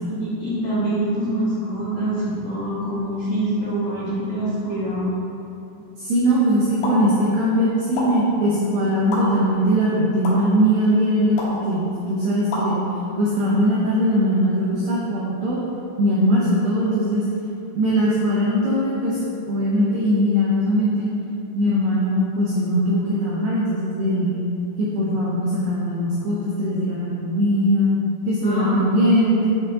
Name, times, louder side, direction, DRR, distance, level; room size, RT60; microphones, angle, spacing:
voice 1, 0.1-5.1 28.4-29.3, right 1 dB, 85° left, -12 dB, 1.4 m, -25 dB
voice 2, 6.0-12.8 13.2-15.6 16.0-17.3 17.8-19.2 19.5-21.1 21.5-24.4 24.8-27.9 28.3-29.5, equal, 85° right, -6 dB, 2.0 m, -20 dB
sound 1, 6.8-7.0 8.0-8.1 9.1-9.2 10.2-10.3 11.4-11.6 12.5-12.7, left 2 dB, 65° left, 2.9 m, -27 dB
9.6 x 5.3 x 2.9 m, 2.8 s
omnidirectional pair, 5.5 m